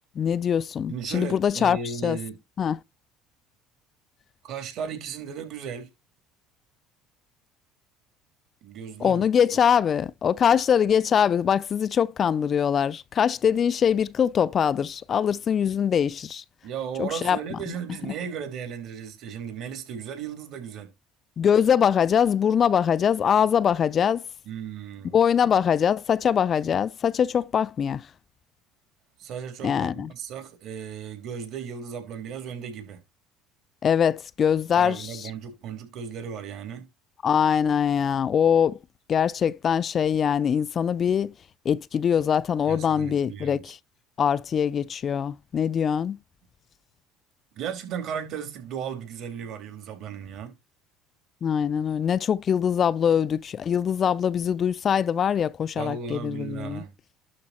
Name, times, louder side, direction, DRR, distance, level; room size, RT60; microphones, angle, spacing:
voice 1, 0.2-2.2 2.6-2.8 9.0-16.4 17.0-17.4 21.4-24.2 25.1-28.1 29.6-30.1 33.8-35.3 37.2-38.8 39.1-41.3 41.7-43.8 44.2-46.2 51.4-56.8, left 8 dB, 45° left, 0.4 m, -23 dB
voice 2, 0.9-2.4 4.4-5.9 8.6-9.3 16.6-20.9 24.4-25.2 29.2-33.0 34.7-36.9 42.7-43.6 47.5-50.5 55.7-56.9, right 7 dB, 60° right, 3.2 m, -35 dB
12.0 x 3.9 x 4.3 m
supercardioid pair, 80°, 0 cm